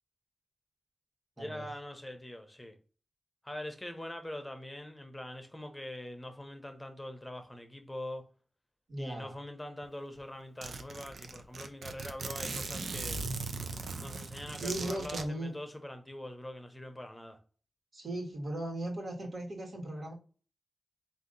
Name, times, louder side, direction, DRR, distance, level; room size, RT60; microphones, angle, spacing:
voice 1, 1.4-2.8 3.4-8.2 9.0-13.2 14.0-17.4, left 1 dB, 15° left, 0.8 m, -43 dB
voice 2, 8.9-9.3 14.6-15.5 17.9-20.1, right 1 dB, 65° right, 1.6 m, -37 dB
Zipper (clothing), 9.8-9.9 10.2-10.3 10.6-15.2, right 3 dB, 85° right, 0.5 m, -39 dB
4.0 x 2.8 x 3.9 m
cardioid pair, 65°, 0 cm